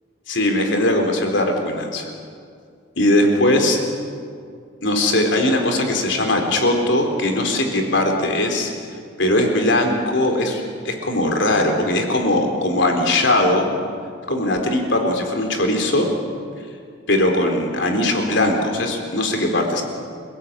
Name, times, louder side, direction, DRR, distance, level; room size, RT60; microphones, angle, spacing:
voice 1, 0.3-2.0 3.0-3.8 4.8-8.7 9.2-13.7 14.3-16.1 17.1-19.8, left 1 dB, 70° left, 3 dB, 3.9 m, -19 dB
29.0 x 17.0 x 8.8 m, 2.2 s
head